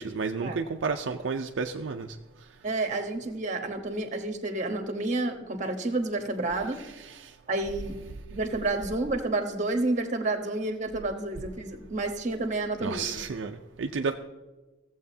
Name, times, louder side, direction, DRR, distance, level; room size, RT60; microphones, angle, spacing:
voice 1, 0.0-2.2 7.1-7.3 12.8-14.2, right 4 dB, 75° right, 4 dB, 0.5 m, -31 dB
voice 2, 2.6-6.8 7.5-8.0 8.3-13.0, right 2 dB, 40° right, 5 dB, 1.1 m, -30 dB
15.5 x 7.8 x 2.7 m, 1.1 s
head